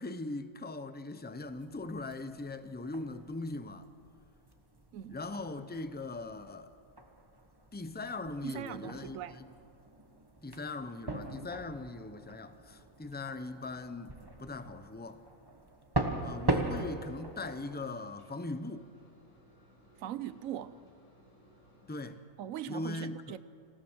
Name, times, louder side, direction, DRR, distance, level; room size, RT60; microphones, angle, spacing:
voice 1, 0.0-3.9 5.1-6.7 7.7-9.5 10.4-15.2 16.2-18.9 21.9-22.2 22.7-23.3, left 2 dB, 15° left, 0.3 m, -40 dB
sound 1, 1.4-17.8, right 2 dB, 20° right, 1.2 m, -41 dB
voice 2, 8.4-9.4 20.0-20.8 22.4-23.4, right 11 dB, 70° right, 1.1 m, -40 dB
sound 2, 16.2-22.0, equal, 85° left, 5.3 m, -62 dB
26.0 x 16.0 x 6.3 m
omnidirectional pair, 1.5 m